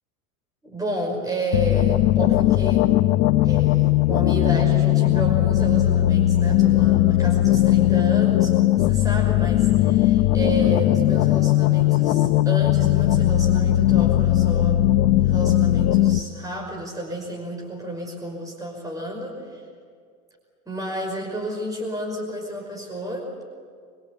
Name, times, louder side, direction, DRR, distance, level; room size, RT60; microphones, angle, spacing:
voice 1, 0.6-2.9 3.4-14.8 15.2-19.6 20.7-23.4, right 1 dB, 10° right, -1 dB, 5.5 m, -31 dB
sound 1, 1.5-16.2, left 14 dB, 65° left, 1.1 m, -18 dB
23.5 x 23.0 x 8.4 m, 2.1 s
supercardioid pair, 120°, 43 cm